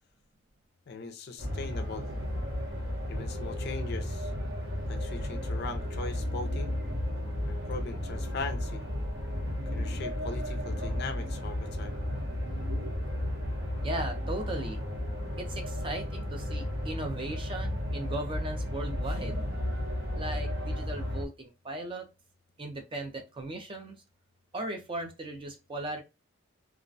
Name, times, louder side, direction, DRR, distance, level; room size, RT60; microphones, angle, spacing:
voice 1, 0.9-2.1 3.1-4.3 4.9-6.8 7.4-8.8 9.7-12.0, left 4 dB, 50° left, 0.4 m, -40 dB
sound 1, 1.4-21.3, left 1 dB, 60° right, 0.8 m, -33 dB
voice 2, 13.8-14.8 15.4-19.4 20.1-22.1 22.6-24.0 24.5-26.0, right 1 dB, 25° right, 0.4 m, -37 dB
2.4 x 2.1 x 2.5 m
head